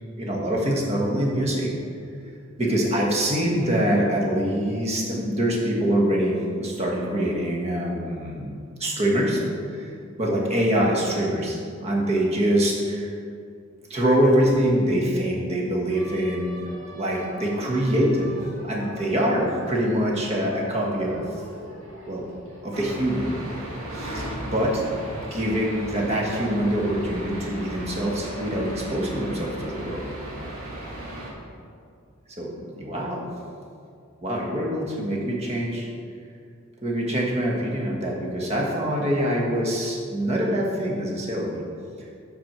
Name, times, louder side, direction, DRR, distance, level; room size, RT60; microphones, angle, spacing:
voice 1, 0.2-1.7 2.6-8.5 8.8-9.4 9.7-9.9 10.2-13.2 13.9-16.6 16.9-18.4 18.6-21.2 22.1-22.2 22.6-23.3 23.9-24.8 25.3-30.0 32.3-32.5 32.8-33.3 34.2-35.9 36.8-41.6 42.0-42.1, equal, 30° right, -2 dB, 1.3 m, -24 dB
sound 1, 15.9-24.7, equal, 65° right, 1.9 m, -44 dB
sound 2, 22.7-31.3, right 1 dB, 85° right, 1.8 m, -35 dB
8.4 x 4.4 x 6.0 m, 2.3 s
head